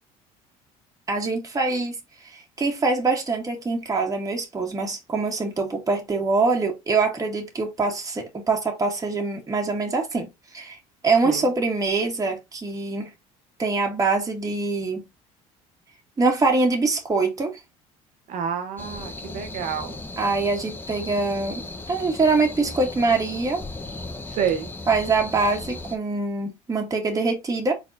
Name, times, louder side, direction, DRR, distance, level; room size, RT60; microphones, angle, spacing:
voice 1, 1.1-2.0 2.2-10.8 11.0-13.1 13.6-15.0 16.2-17.6 20.2-23.6 24.9-27.7, right 3 dB, 25° right, 2.2 m, -24 dB
voice 2, 18.3-20.0 24.3-24.7, right 8 dB, 60° right, 1.2 m, -28 dB
sound 1, 18.8-26.0, left 2 dB, 15° left, 1.1 m, -36 dB
4.4 x 4.2 x 2.7 m
supercardioid pair, 105°, 14 cm